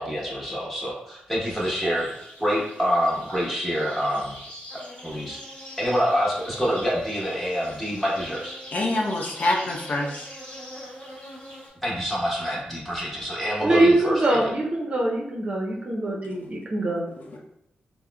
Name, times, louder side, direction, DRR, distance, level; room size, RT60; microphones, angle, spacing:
voice 1, 0.0-2.0 2.4-4.4 5.0-5.4 5.8-8.6 11.8-14.5, equal, 5° left, -6 dB, 1.1 m, -26 dB
sound 1, 1.4-11.7, equal, 35° left, 1.3 m, -42 dB
voice 2, 8.7-10.3 16.4-16.5 17.2-17.4, left 2 dB, 55° left, -1 dB, 0.5 m, -26 dB
voice 3, 13.6-17.0, right 2 dB, 45° right, -2 dB, 0.6 m, -23 dB
3.4 x 2.0 x 2.2 m, 0.78 s
cardioid pair, 75°, 3 cm